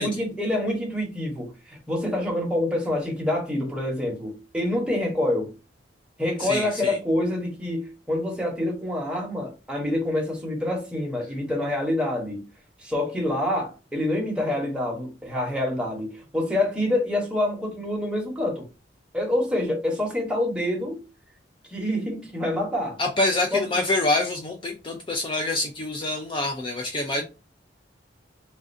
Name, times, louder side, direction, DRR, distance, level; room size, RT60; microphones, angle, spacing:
voice 1, 0.0-5.5 6.2-12.4 12.8-18.7 19.1-21.0 21.7-23.0 23.5-23.6 27.2-27.3, left 1 dB, 5° right, 0.9 m, -26 dB
voice 2, 6.4-7.0 23.0-27.2, left 2 dB, 25° left, 0.4 m, -26 dB
3.2 x 2.4 x 2.6 m
head